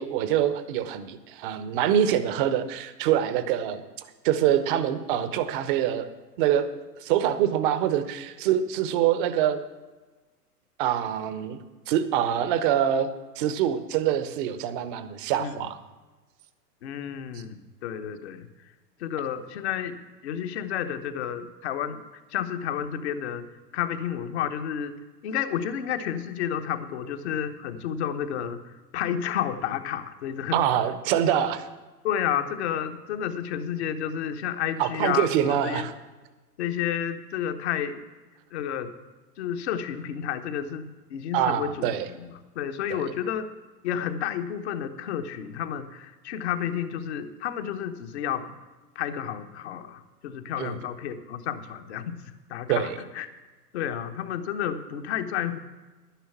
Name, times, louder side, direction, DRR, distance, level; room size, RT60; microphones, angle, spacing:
voice 1, 0.0-6.1 6.4-6.7 7.0-9.6 10.8-11.6 11.9-13.1 13.4-15.8 30.5-31.7 34.8-35.9 41.3-42.1 42.9-43.0 50.6-50.8 52.7-53.0, right 10 dB, 30° right, 12 dB, 0.9 m, -25 dB
voice 2, 16.8-18.5 19.0-22.0 22.3-23.4 23.7-24.9 25.2-30.6 32.0-35.9 36.6-38.0 38.5-38.9 39.4-43.5 43.8-48.6 48.9-52.2 52.5-53.3 53.7-55.6, left 9 dB, 45° left, 8 dB, 1.1 m, -31 dB
11.5 x 10.0 x 6.0 m, 1.2 s
figure-of-eight pair, 100°, 48 cm